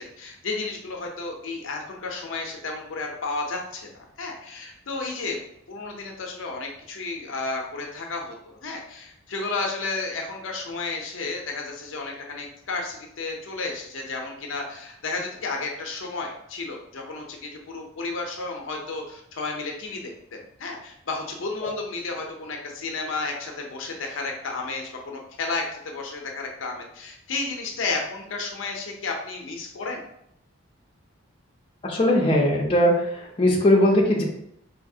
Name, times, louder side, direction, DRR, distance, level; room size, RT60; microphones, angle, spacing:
voice 1, 0.0-5.4 5.7-30.0, left 3 dB, 70° left, 1 dB, 0.6 m, -32 dB
voice 2, 31.9-33.0 33.4-34.2, left 1 dB, 25° left, -2 dB, 0.6 m, -19 dB
4.0 x 2.8 x 2.7 m, 0.73 s
head